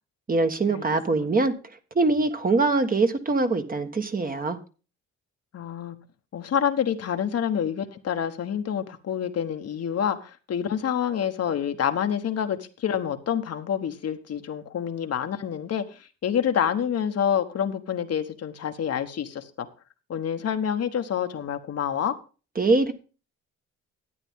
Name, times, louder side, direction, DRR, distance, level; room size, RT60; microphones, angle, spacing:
voice 1, 0.3-1.5 1.9-4.6 22.6-22.9, right 3 dB, 30° right, 7 dB, 1.4 m, -23 dB
voice 2, 5.5-6.0 6.3-19.7 20.1-22.1, left 8 dB, 55° left, 7 dB, 1.2 m, -27 dB
12.0 x 9.1 x 3.6 m, 0.34 s
cardioid pair, 90°, 30 cm